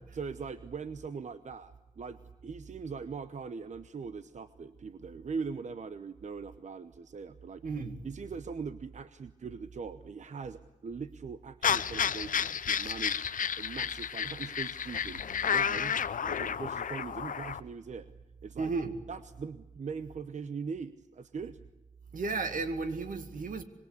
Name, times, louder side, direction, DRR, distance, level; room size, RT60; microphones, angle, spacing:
voice 1, 0.1-7.6 8.0-13.3 13.6-16.0 16.2-18.1 18.4-18.7 19.1-21.6, right 5 dB, 65° right, 0.9 m, -41 dB
voice 2, 7.6-8.1 18.6-19.0 22.1-23.6, right 4 dB, 85° right, 2.1 m, -33 dB
sound 1, 11.6-17.6, left 7 dB, 85° left, 0.8 m, -31 dB
25.5 x 22.0 x 8.3 m
wide cardioid pair, 95°, 13 cm